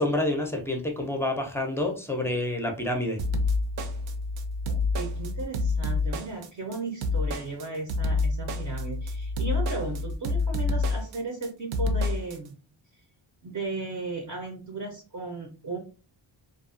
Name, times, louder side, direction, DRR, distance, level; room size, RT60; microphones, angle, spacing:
voice 1, 0.0-3.2, left 1 dB, 5° left, 3 dB, 0.5 m, -28 dB
sound 1, 3.2-12.4, left 3 dB, 85° right, 0.6 m, -28 dB
voice 2, 4.7-12.5 13.4-15.8, right 3 dB, 40° right, 2 dB, 0.6 m, -35 dB
2.4 x 2.3 x 2.4 m, 0.35 s
cardioid pair, 105°, 47 cm